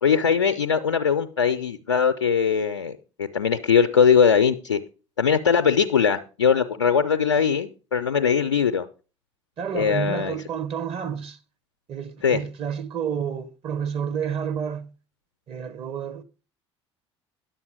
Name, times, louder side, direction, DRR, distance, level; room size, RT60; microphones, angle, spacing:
voice 1, 0.0-4.8 5.2-8.9 9.7-10.4 12.2-12.4, left 6 dB, 80° left, 0.5 m, -21 dB
voice 2, 9.6-11.4 11.9-14.9 15.5-16.2, right 7 dB, 40° right, 1.1 m, -30 dB
10.0 x 7.1 x 4.8 m
figure-of-eight pair, 60°, 15 cm